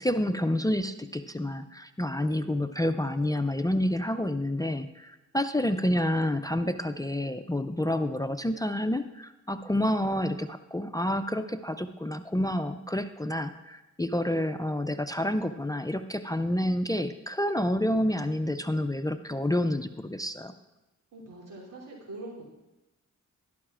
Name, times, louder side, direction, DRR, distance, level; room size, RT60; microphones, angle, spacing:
voice 1, 0.0-20.5, left 1 dB, 10° left, 10 dB, 0.4 m, -29 dB
voice 2, 21.1-22.5, right 2 dB, 80° right, -4 dB, 3.2 m, -43 dB
12.0 x 12.0 x 2.5 m, 0.99 s
cardioid pair, 65°, 32 cm